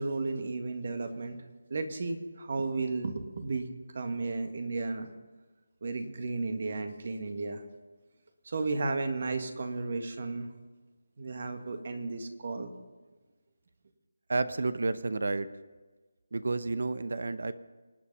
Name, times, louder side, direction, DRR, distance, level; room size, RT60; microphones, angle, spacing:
voice 1, 0.0-1.4 1.7-5.1 5.8-7.6 8.5-10.5 11.2-12.7, right 3 dB, 50° right, 7 dB, 1.8 m, -34 dB
voice 2, 14.3-15.5 16.3-17.5, right 3 dB, 65° right, 14 dB, 0.9 m, -30 dB
25.5 x 8.5 x 5.5 m, 1.3 s
figure-of-eight pair, 165°, 0 cm